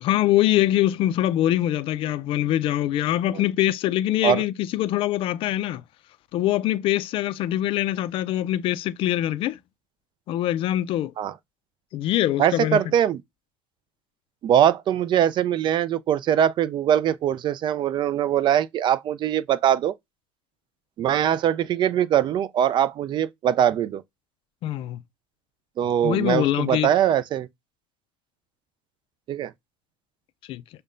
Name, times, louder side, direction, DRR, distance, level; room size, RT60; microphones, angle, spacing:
voice 1, 0.0-5.8 6.3-9.6 10.3-11.1 11.9-12.8 24.6-25.0 26.0-26.9 30.5-30.6, left 13 dB, 50° left, 0.4 m, -23 dB
voice 2, 12.4-13.2 14.4-19.9 21.0-24.0 25.8-27.5 29.3-29.5, right 10 dB, 45° right, 0.4 m, -22 dB
6.4 x 2.2 x 2.5 m
hypercardioid pair, 80°, 12 cm